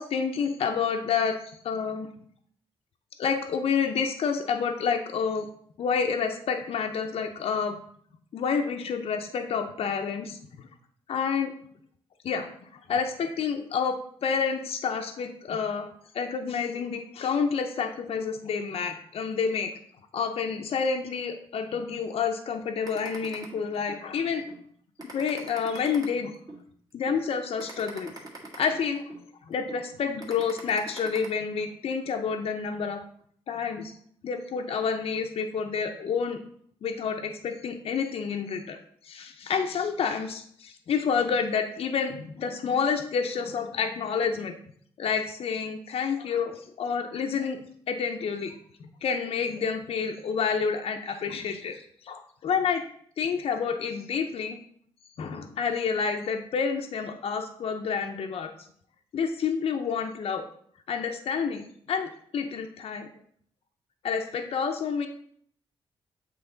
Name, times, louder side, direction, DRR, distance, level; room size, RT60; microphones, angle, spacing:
voice 1, 0.0-2.1 3.2-5.5 5.8-7.8 8.3-10.4 11.1-11.5 12.2-12.5 12.9-15.9 16.1-19.7 20.1-24.5 25.1-26.3 26.9-28.1 28.6-29.0 29.5-33.0 33.5-33.9 34.2-36.4 36.8-38.8 39.0-44.5 45.0-48.6 49.0-52.8 53.2-54.6 55.2-58.5 59.1-60.5 60.9-63.1 64.0-65.1, left 6 dB, 65° left, 4 dB, 0.6 m, -29 dB
sound 1, 22.9-24.0 24.5-24.6 25.0-26.6 27.1-27.2 27.6-29.2 29.7-29.8 30.2-31.3, right 2 dB, 35° right, 1.6 m, -42 dB
7.9 x 3.2 x 3.8 m, 0.63 s
cardioid pair, 105°, 11 cm